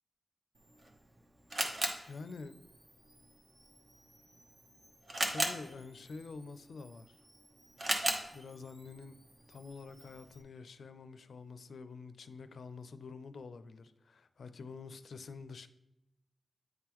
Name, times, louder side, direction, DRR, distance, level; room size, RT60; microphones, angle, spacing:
Camera, 0.6-10.4, right 1 dB, 40° right, 0.9 m, -40 dB
voice 1, 2.1-2.6 5.3-7.2 8.3-9.2 9.5-15.7, left 4 dB, 80° left, 0.4 m, -47 dB
9.1 x 3.8 x 3.0 m
wide cardioid pair, 95°, 0 cm